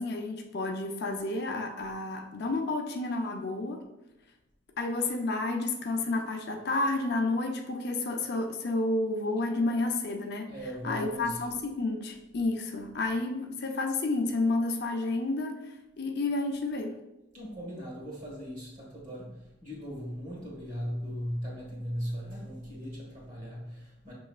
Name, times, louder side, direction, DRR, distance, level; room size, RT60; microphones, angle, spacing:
voice 1, 0.0-3.8 4.8-10.5 10.8-15.6 16.0-17.0, left 2 dB, 55° left, 3 dB, 0.5 m, -30 dB
voice 2, 10.5-11.6 17.3-24.1, equal, 40° right, -3 dB, 1.5 m, -38 dB
6.2 x 3.1 x 2.4 m, 0.93 s
head